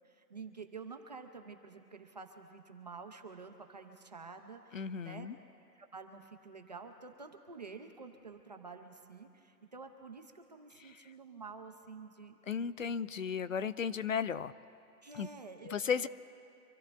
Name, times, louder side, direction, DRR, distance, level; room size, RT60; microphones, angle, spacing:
voice 1, 0.0-5.3 5.8-12.4 15.0-16.1, right 4 dB, 25° right, 4 dB, 0.7 m, -49 dB
voice 2, 4.7-5.4 10.8-11.1 12.5-14.5 15.1-15.3 15.7-16.1, left 7 dB, 55° left, 14 dB, 0.6 m, -35 dB
26.5 x 13.0 x 3.5 m, 2.7 s
hypercardioid pair, 165°, 49 cm